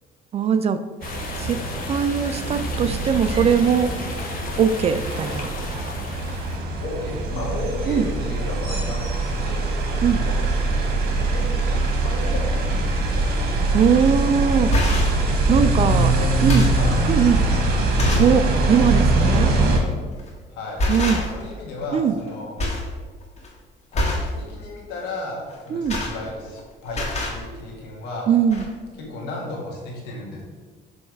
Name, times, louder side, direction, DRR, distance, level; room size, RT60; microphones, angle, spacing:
voice 1, 0.3-0.8 1.4-1.6 1.9-3.9 4.6-5.5 7.9-8.1 10.0-10.2 13.7-14.7 15.5-16.1 16.4-16.7 17.1-17.4 18.2-19.5 20.9-21.2 21.9-22.1 25.7-26.0 28.3-28.6, right 7 dB, 40° right, 11 dB, 0.4 m, -20 dB
sound 1, 1.0-6.6, left 4 dB, 60° left, 1.0 m, -34 dB
sound 2, 1.0-19.8, right 2 dB, 65° right, 1.3 m, -23 dB
voice 2, 6.8-9.7 10.2-11.8 12.0-13.3 16.0-18.3 20.5-20.9 21.1-22.6 23.9-28.4 29.0-30.4, left 2 dB, 90° left, -2 dB, 1.8 m, -34 dB
sound 3, 13.8-14.0 14.5-15.2 15.9-16.0 16.3-16.9 17.5-17.6 18.0-18.4 18.8-18.9 20.1-20.4 20.8-21.5 21.8-22.3 22.6-22.9 23.2-23.5 23.9-24.3 25.5-26.6 26.9-27.4 28.2-28.3 28.5-28.7, left 1 dB, 40° left, 1.8 m, -25 dB
7.0 x 3.3 x 4.6 m, 1.5 s
cardioid pair, 110°, 17 cm